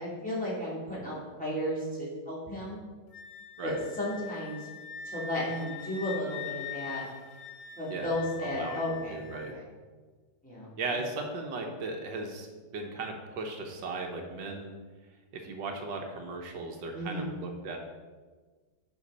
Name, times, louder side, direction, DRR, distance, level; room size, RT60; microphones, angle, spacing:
voice 1, 0.0-2.8 3.6-4.7 5.1-7.1 7.8-9.6 10.4-11.0 16.9-17.3, left 1 dB, 5° left, -7 dB, 2.9 m, -34 dB
Wind instrument woodwind instrument, 3.1-9.5, left 8 dB, 60° left, 1.4 m, -43 dB
voice 2, 7.9-9.5 10.8-12.5 12.7-14.7 15.4-17.8, right 3 dB, 85° right, 3 dB, 1.7 m, -37 dB
10.0 x 5.9 x 4.1 m, 1.4 s
omnidirectional pair, 1.9 m